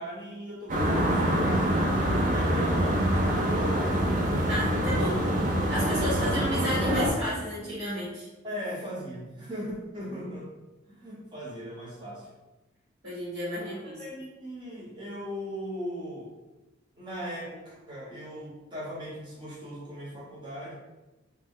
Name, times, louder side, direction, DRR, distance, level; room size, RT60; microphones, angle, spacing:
voice 1, 0.0-1.6 2.3-4.0 6.2-6.3 8.4-10.5 10.9-12.3 13.6-16.3 17.0-20.7, equal, 25° right, -7 dB, 0.9 m, -38 dB
sound 1, 0.7-7.1, equal, 40° right, 0.4 m, -25 dB
voice 2, 4.5-5.1 5.7-8.3 13.0-14.0, equal, 70° right, -10 dB, 1.4 m, -32 dB
2.8 x 2.1 x 3.6 m, 1.1 s
head